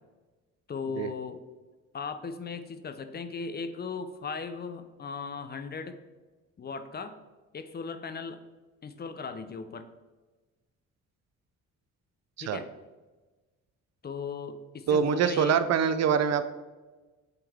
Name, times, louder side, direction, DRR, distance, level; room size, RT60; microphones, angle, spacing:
voice 1, 0.7-1.4 1.9-6.0 6.6-7.2 7.5-8.4 8.8-9.9 12.4-12.7 14.0-15.6, left 5 dB, 35° left, 10 dB, 0.5 m, -37 dB
voice 2, 14.9-16.4, right 7 dB, 60° right, 11 dB, 0.5 m, -24 dB
7.7 x 3.8 x 3.4 m, 1.2 s
cardioid pair, 90°, 30 cm